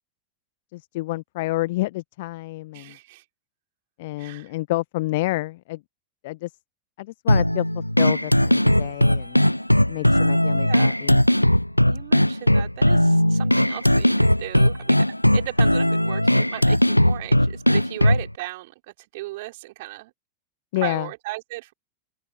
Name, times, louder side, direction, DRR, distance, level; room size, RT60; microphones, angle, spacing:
voice 1, 0.7-3.0 4.0-5.8 6.2-6.5 7.0-9.4 9.9-11.3 20.7-21.1, left 19 dB, 50° left, 1.1 m, -29 dB
voice 2, 2.7-3.2 4.2-4.5 10.5-11.0 11.9-15.1 15.3-20.1 20.8-21.7, right 19 dB, 50° right, 5.2 m, -36 dB
sound 1, 7.3-18.3, left 1 dB, 90° left, 0.3 m, -18 dB
open air
figure-of-eight pair, 90°, 0 cm